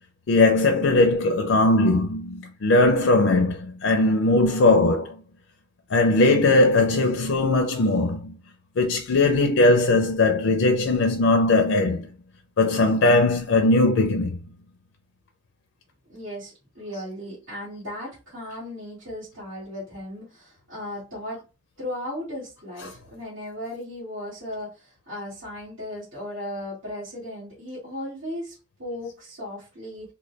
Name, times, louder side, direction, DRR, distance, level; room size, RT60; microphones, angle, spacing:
voice 1, 0.3-5.1 5.9-8.3 8.8-12.0 12.6-14.4, left 2 dB, 75° left, 0.5 m, -19 dB
voice 2, 16.1-21.4 21.8-30.1, left 1 dB, 75° right, 1.7 m, -36 dB
3.8 x 2.2 x 3.2 m
head